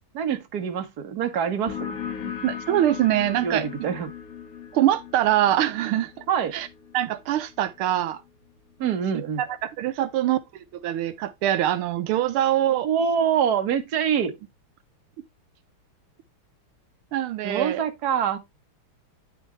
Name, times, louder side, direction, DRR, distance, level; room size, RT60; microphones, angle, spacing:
voice 1, 0.1-2.0 2.2-2.3 3.4-4.1 6.3-6.6 8.8-9.4 12.7-14.3 17.4-18.4, right 8 dB, 50° right, 1.7 m, -25 dB
sound 1, 1.7-8.9, left 8 dB, 45° left, 1.8 m, -39 dB
voice 2, 2.4-3.7 4.7-6.2 6.5-6.7 6.9-8.2 9.1-12.9 17.1-17.8, right 12 dB, 85° right, 1.6 m, -24 dB
9.5 x 6.6 x 3.2 m
omnidirectional pair, 2.3 m